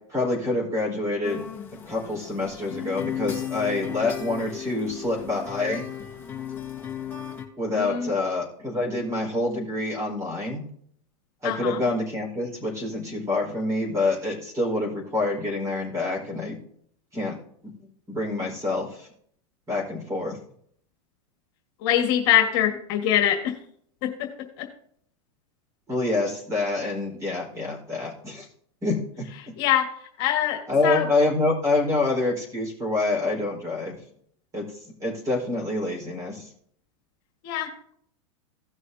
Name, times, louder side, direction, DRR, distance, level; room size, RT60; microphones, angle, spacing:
voice 1, 0.1-1.4 1.7-5.8 7.6-10.6 11.4-16.6 17.1-17.4 17.6-19.1 19.7-20.4 25.9-28.5 28.8-29.2 30.7-34.0 34.5-36.5, left 2 dB, 20° right, -1 dB, 4.6 m, -27 dB
sound 1, 1.2-7.5, left 9 dB, 10° left, 1.5 m, -35 dB
voice 2, 7.7-8.1 11.4-11.8 21.8-23.6 24.0-24.3 24.6-24.7 29.6-29.9 30.2-31.1 37.4-37.9, left 11 dB, 50° left, 4 dB, 1.7 m, -24 dB
17.0 x 6.5 x 2.8 m, 0.65 s
supercardioid pair, 145°, 17 cm